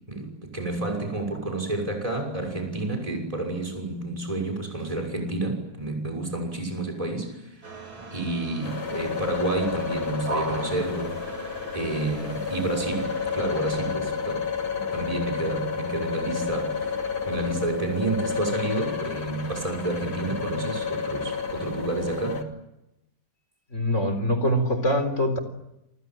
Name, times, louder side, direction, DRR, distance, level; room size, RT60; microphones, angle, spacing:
voice 1, 0.1-7.8 8.1-17.0 17.3-22.4, right 2 dB, 15° right, 2 dB, 6.3 m, -30 dB
sound 1, 7.6-14.0, right 3 dB, 75° right, 5.2 m, -39 dB
sound 2, 8.6-22.4, left 6 dB, 80° left, 3.6 m, -31 dB
voice 2, 23.7-25.4, equal, 35° left, 9 dB, 4.4 m, -24 dB
29.0 x 26.0 x 7.7 m, 0.91 s
omnidirectional pair, 2.1 m